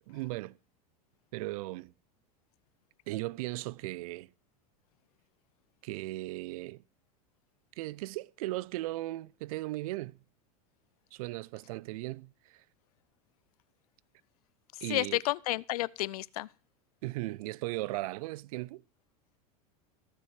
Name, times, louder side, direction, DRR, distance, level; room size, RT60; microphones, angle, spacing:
voice 1, 0.1-0.6 1.3-1.9 3.1-4.3 5.8-6.8 7.8-10.2 11.1-12.6 14.8-15.2 17.0-18.8, right 19 dB, 70° right, 0.4 m, -37 dB
voice 2, 14.7-16.5, left 17 dB, 85° left, 0.4 m, -31 dB
15.0 x 6.8 x 4.6 m
supercardioid pair, 115°, 19 cm